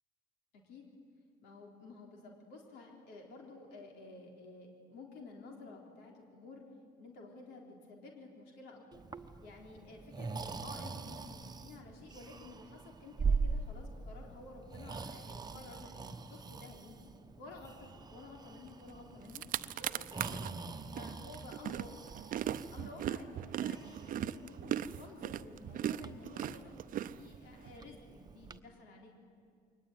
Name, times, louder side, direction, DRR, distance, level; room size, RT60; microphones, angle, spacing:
voice 1, 1.4-6.6 7.0-19.4 19.8-20.5 21.0-22.2 22.7-29.1, left 3 dB, 90° left, 0 dB, 3.7 m, -52 dB
Breathing, 8.9-28.6, right 4 dB, 25° right, 1.0 m, -42 dB
sound 1, 18.9-19.0 19.2-20.5 21.0-27.7, right 11 dB, 55° right, 0.6 m, -38 dB
22.5 x 19.0 x 9.4 m, 2.3 s
cardioid pair, 110°, 17 cm